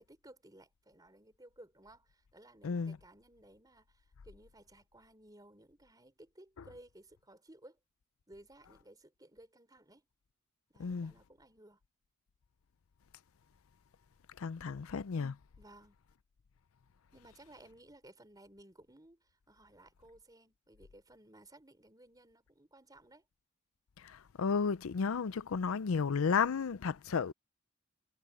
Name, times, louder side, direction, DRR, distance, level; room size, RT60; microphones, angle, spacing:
voice 1, 0.0-7.8 8.3-10.1 10.7-11.8 14.6-14.9 15.6-16.0 17.1-23.3, right 1 dB, 15° right, 3.9 m, -58 dB
voice 2, 2.6-3.0 10.8-11.1 14.4-15.4 24.0-27.3, left 5 dB, 75° left, 0.5 m, -33 dB
head